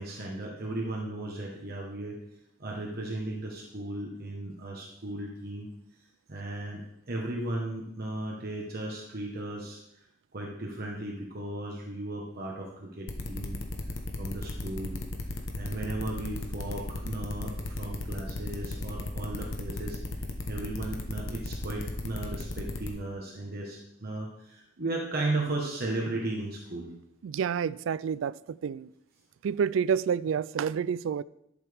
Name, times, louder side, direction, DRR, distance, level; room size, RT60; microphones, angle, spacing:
voice 1, 0.0-2.2 2.6-5.7 6.3-9.8 10.3-13.6 14.2-15.0 15.5-26.9, right 2 dB, 50° right, 1.3 m, -35 dB
sound 1, 13.1-22.9, left 2 dB, 65° left, 1.2 m, -35 dB
voice 2, 27.2-28.9 29.4-31.2, right 7 dB, 70° right, 0.3 m, -29 dB
12.0 x 7.2 x 3.5 m
head